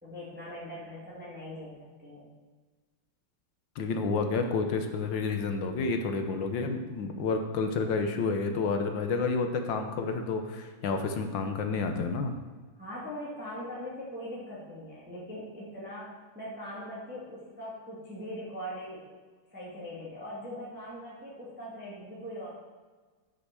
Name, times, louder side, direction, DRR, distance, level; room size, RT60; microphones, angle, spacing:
voice 1, 0.0-2.3 12.7-19.1 19.5-22.5, equal, 5° right, -6 dB, 1.9 m, -41 dB
voice 2, 3.8-12.3, left 4 dB, 70° left, 5 dB, 1.6 m, -30 dB
7.8 x 6.7 x 6.1 m, 1.4 s
omnidirectional pair, 2.2 m